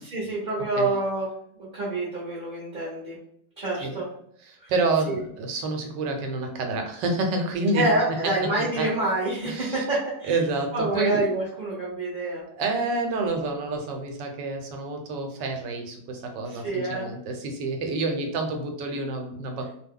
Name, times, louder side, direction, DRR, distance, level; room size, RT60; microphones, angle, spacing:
voice 1, 0.0-3.2 3.6-4.1 4.6-4.7 5.1-5.2 7.7-10.3 10.7-12.4 16.5-17.1, right 2 dB, 40° right, -7 dB, 0.9 m, -27 dB
voice 2, 4.4-8.5 8.7-8.9 9.4-9.8 10.2-11.3 12.5-19.7, right 3 dB, 85° right, 3 dB, 1.2 m, -28 dB
2.8 x 2.1 x 3.6 m, 0.67 s
omnidirectional pair, 1.9 m